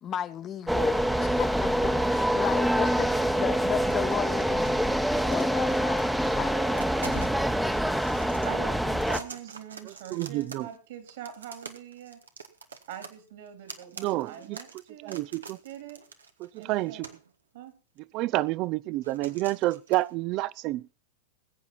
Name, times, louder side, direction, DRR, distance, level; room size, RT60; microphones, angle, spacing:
voice 1, 0.0-6.8, left 9 dB, 30° left, 1.0 m, -34 dB
sound 1, 0.7-9.2, equal, ahead, 1.0 m, -26 dB
sound 2, 2.9-3.3 3.6-6.3 6.6-8.5 8.9-10.8 11.1-17.3 18.0-18.1 19.0-20.1, right 5 dB, 85° right, 1.4 m, -45 dB
voice 2, 8.3-12.2 12.9-15.3 15.6-16.0 16.6-17.0 17.5-17.7, right 9 dB, 65° right, 3.8 m, -43 dB
voice 3, 10.1-10.7 14.0-14.6 15.0-15.6 16.4-17.1 18.1-21.1, right 18 dB, 45° right, 0.5 m, -29 dB
20.5 x 8.3 x 4.2 m
hypercardioid pair, 95°, 0 cm